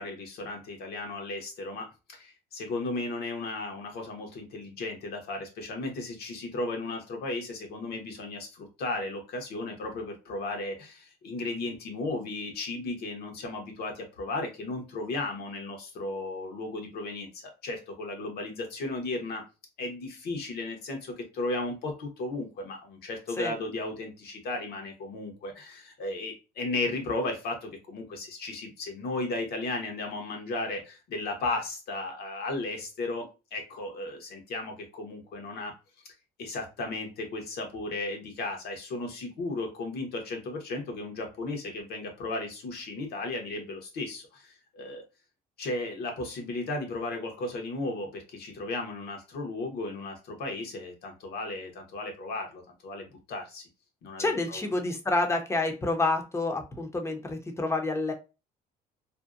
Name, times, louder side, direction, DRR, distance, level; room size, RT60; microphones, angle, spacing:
voice 1, 0.0-19.4 19.8-35.7 36.4-45.0 45.6-53.6 54.0-54.7, left 2 dB, 70° left, 3 dB, 0.9 m, -35 dB
voice 2, 54.2-58.1, left 2 dB, 15° left, 5 dB, 0.6 m, -28 dB
2.6 x 2.1 x 2.4 m, 0.29 s
cardioid pair, 110°, 17 cm